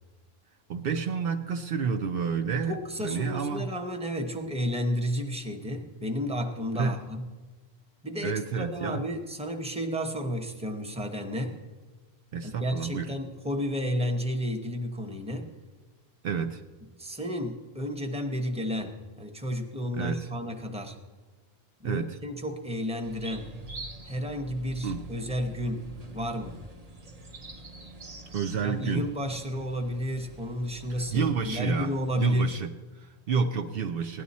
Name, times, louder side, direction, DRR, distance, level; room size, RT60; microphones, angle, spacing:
voice 1, 0.7-2.7 3.0-3.7 6.8-7.0 8.2-9.0 12.3-13.1 16.2-16.6 19.9-20.3 21.8-22.2 24.8-25.0 28.3-29.1 31.1-34.2, right 6 dB, 65° right, 5 dB, 0.8 m, -30 dB
voice 2, 2.6-7.2 8.0-11.5 12.4-15.5 17.0-21.0 21.8-23.5 24.0-25.9 26.1-26.6 28.6-32.6, equal, 5° right, 3 dB, 0.9 m, -32 dB
sound 1, 23.0-32.3, right 1 dB, 40° right, 0.9 m, -45 dB
17.0 x 11.0 x 4.2 m, 1.3 s
omnidirectional pair, 1.1 m